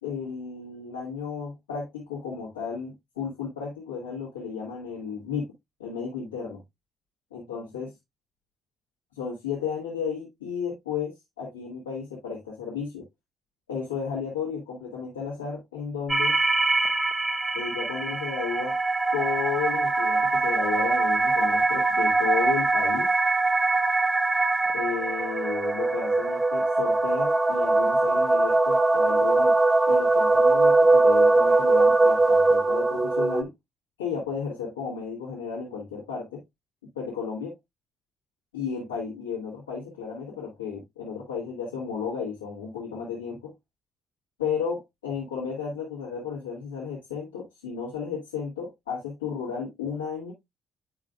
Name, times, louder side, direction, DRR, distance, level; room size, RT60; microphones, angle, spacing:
voice 1, 0.0-5.5 5.8-6.6 7.3-7.9 9.2-13.0 13.7-16.4 17.5-18.8 19.1-23.1 24.7-29.5 29.9-33.5 34.0-36.4 37.0-37.6 38.5-43.5 44.4-50.3, left 6 dB, 90° left, 1.9 m, -33 dB
sound 1, 16.1-33.4, right 2 dB, 20° right, 0.9 m, -22 dB
9.6 x 4.9 x 2.3 m
hypercardioid pair, 50°, 0 cm